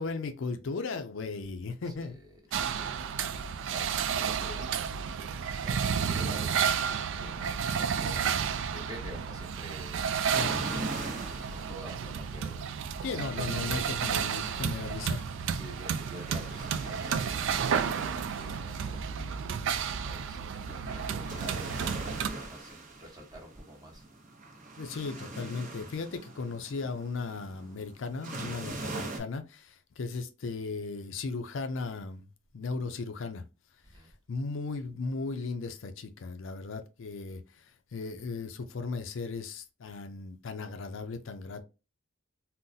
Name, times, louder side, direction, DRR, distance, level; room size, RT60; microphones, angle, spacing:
voice 1, 0.0-2.2 2.5-2.8 10.3-10.7 13.0-15.2 24.8-32.3 32.5-33.4 34.3-41.6, left 4 dB, 65° left, 0.4 m, -36 dB
voice 2, 1.8-3.0 3.6-4.6 5.6-8.3 8.7-10.7 11.4-12.6 13.3-13.9 15.4-24.1 33.8-34.1, equal, 20° right, 1.0 m, -48 dB
sound 1, 2.5-22.3, right 7 dB, 60° right, 0.3 m, -32 dB
sound 2, 10.3-29.2, right 2 dB, 40° right, 0.7 m, -43 dB
3.8 x 2.1 x 2.6 m
head